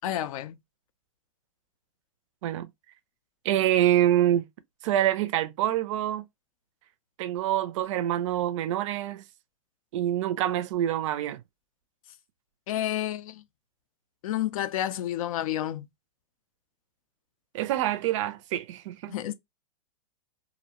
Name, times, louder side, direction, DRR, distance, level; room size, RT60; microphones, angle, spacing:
voice 1, 0.0-0.6 12.7-13.4 14.2-15.9 19.1-19.3, left 12 dB, 65° left, 0.4 m, -30 dB
voice 2, 3.4-4.5 4.8-6.2 7.2-9.2 9.9-11.4 17.5-19.1, right 12 dB, 55° right, 0.4 m, -26 dB
2.5 x 2.0 x 2.8 m
hypercardioid pair, 135°, 19 cm